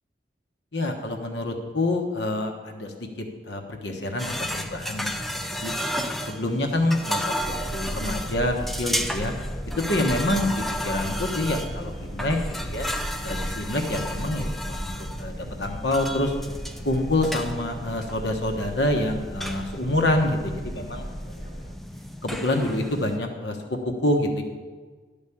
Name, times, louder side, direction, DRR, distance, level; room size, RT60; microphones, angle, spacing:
voice 1, 0.7-5.7 6.3-9.3 9.8-12.4 12.6-12.9 13.2-14.9 15.2-16.3 16.8-21.1 22.2-24.4, left 1 dB, 85° left, 3 dB, 1.2 m, -27 dB
sound 1, 4.2-23.2, equal, ahead, 0.5 m, -33 dB
sound 2, 7.4-21.7, equal, 60° left, 2.4 m, -36 dB
12.0 x 5.2 x 8.5 m, 1.4 s
head